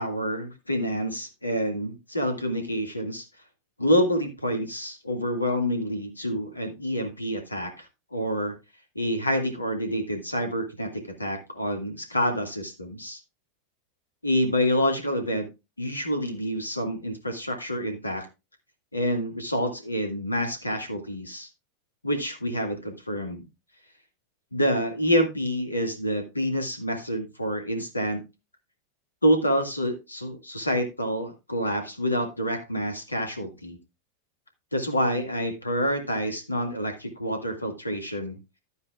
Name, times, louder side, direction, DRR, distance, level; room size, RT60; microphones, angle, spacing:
voice 1, 0.0-3.3 3.8-7.9 8.1-8.5 9.0-13.2 14.2-15.5 15.8-18.3 18.9-21.5 22.0-23.4 24.5-28.2 29.2-33.8 34.7-38.4, equal, 85° left, 6 dB, 2.0 m, -27 dB
12.0 x 9.4 x 2.4 m, 0.25 s
figure-of-eight pair, 90°, 0 cm